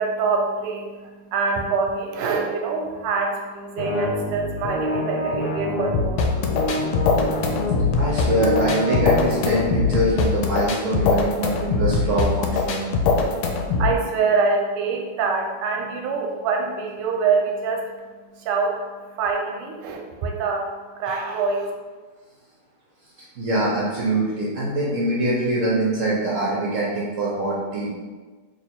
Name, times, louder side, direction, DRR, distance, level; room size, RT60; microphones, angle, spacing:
voice 1, 0.0-7.1 13.4-17.9 18.3-18.8 19.1-21.7, right 4 dB, 90° right, 1 dB, 1.6 m, -25 dB
sound 1, 3.8-9.7, left 1 dB, 65° left, 1.0 m, -27 dB
sound 2, 5.9-13.9, left 4 dB, 85° left, 1.4 m, -22 dB
voice 2, 8.0-12.8 23.4-27.9, right 1 dB, 65° right, -5 dB, 0.7 m, -23 dB
3.3 x 3.1 x 4.3 m, 1.4 s
omnidirectional pair, 2.4 m